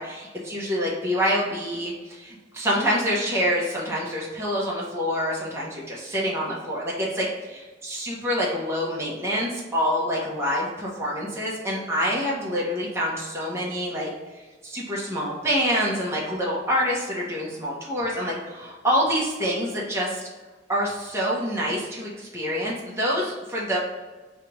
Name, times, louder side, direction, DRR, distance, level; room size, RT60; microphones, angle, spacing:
voice 1, 0.0-14.1 14.6-20.2 20.7-23.8, equal, 15° right, -5 dB, 0.9 m, -26 dB
3.3 x 3.0 x 4.6 m, 1.3 s
head